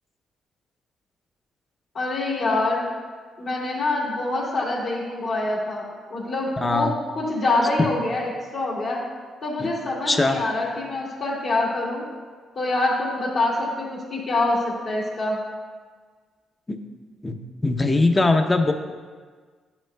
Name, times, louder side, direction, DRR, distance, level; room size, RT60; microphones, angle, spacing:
voice 1, 1.9-2.9 3.4-9.0 9.4-12.1 12.6-15.4, left 2 dB, 60° left, -4 dB, 2.0 m, -25 dB
voice 2, 6.6-6.9 9.6-9.7 10.1-10.4 16.7-16.8 17.2-17.3 17.6-18.7, left 2 dB, 20° left, 6 dB, 0.7 m, -20 dB
10.0 x 6.0 x 2.2 m, 1.5 s
supercardioid pair, 60°, 0 cm